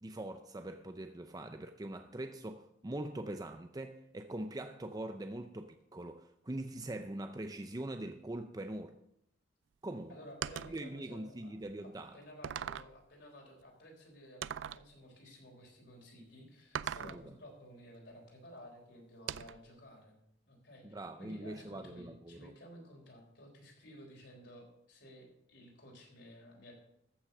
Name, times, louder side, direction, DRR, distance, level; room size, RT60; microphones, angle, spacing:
voice 1, 0.0-8.9 9.8-10.2 10.7-12.2 16.8-17.2 20.8-22.5, right 1 dB, 20° right, 0.5 m, -43 dB
voice 2, 10.1-11.5 11.8-20.2 20.4-20.9 21.2-26.7, equal, 65° left, 3.9 m, -54 dB
sound 1, 10.4-10.8 11.6-11.7 12.4-13.0 14.4-14.9 16.8-17.3 19.3-19.7, right 9 dB, 80° right, 0.4 m, -40 dB
14.5 x 6.1 x 6.6 m
head